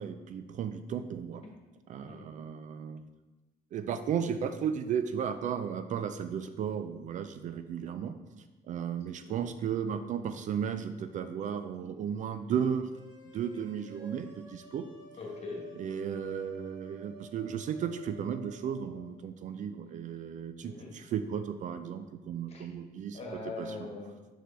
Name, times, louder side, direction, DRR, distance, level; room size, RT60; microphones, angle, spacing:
voice 1, 0.0-1.4 1.9-3.0 3.7-8.1 8.7-12.9 13.3-14.9 15.8-23.2 23.6-23.7, right 8 dB, 50° right, 10 dB, 0.4 m, -34 dB
sound 1, 12.9-19.0, right 3 dB, 25° right, 1.5 m, -53 dB
voice 2, 15.2-15.7 20.6-21.0 22.5-22.7 23.1-24.3, left 3 dB, 40° left, 0 dB, 1.5 m, -41 dB
5.9 x 4.9 x 3.4 m, 1.1 s
cardioid pair, 110°, 17 cm